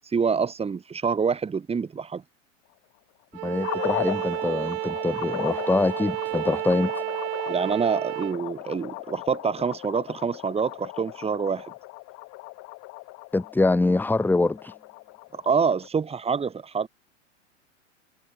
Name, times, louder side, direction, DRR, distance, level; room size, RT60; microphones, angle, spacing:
voice 1, 0.1-2.2 7.5-11.7 15.3-16.9, right 5 dB, 15° right, 3.6 m, -26 dB
Bowed string instrument, 3.3-8.4, right 29 dB, 50° right, 1.8 m, -31 dB
voice 2, 3.4-7.0 13.3-14.7, left 2 dB, 5° left, 1.4 m, -24 dB
sound 1, 3.6-15.9, left 25 dB, 40° left, 3.1 m, -37 dB
figure-of-eight pair, 95°, 37 cm